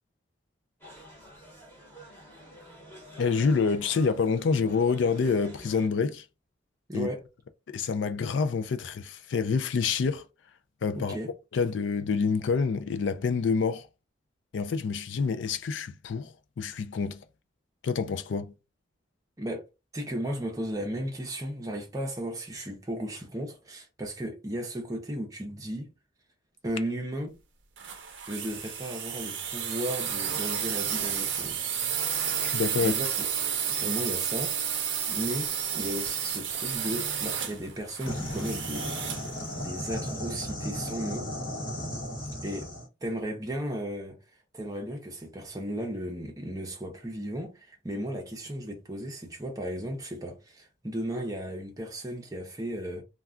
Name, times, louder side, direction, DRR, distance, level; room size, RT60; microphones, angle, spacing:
sound 1, 0.8-5.9, equal, 10° left, 1.0 m, -48 dB
voice 1, 3.2-6.3 6.9-7.1 7.7-10.3 10.8-11.2 11.5-13.9 14.5-17.2 17.8-18.5 32.4-32.9, left 5 dB, 70° left, 0.4 m, -27 dB
voice 2, 6.9-7.2 11.0-11.3 19.4-19.6 19.9-25.9 26.6-27.4 28.3-31.6 32.8-33.3 33.8-34.5 35.1-39.2 39.6-41.3 42.4-42.7 43.0-44.2 44.5-53.0, equal, 20° right, 0.7 m, -35 dB
sound 2, 27.8-39.3, right 8 dB, 65° right, 0.6 m, -31 dB
sound 3, 38.1-42.9, equal, 45° left, 1.0 m, -35 dB
2.3 x 2.2 x 3.6 m
head